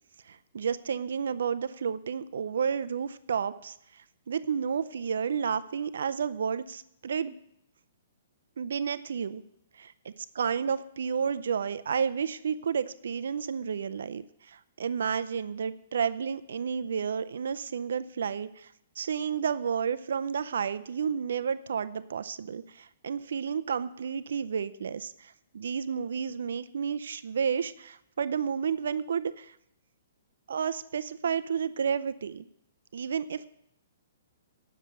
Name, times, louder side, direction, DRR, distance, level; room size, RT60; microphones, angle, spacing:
voice 1, 0.3-7.3 8.6-9.4 9.7-29.6 30.5-32.4 32.9-33.5, right 7 dB, 75° right, 13 dB, 0.5 m, -31 dB
9.5 x 6.7 x 7.9 m, 0.75 s
hypercardioid pair, 155°, 0 cm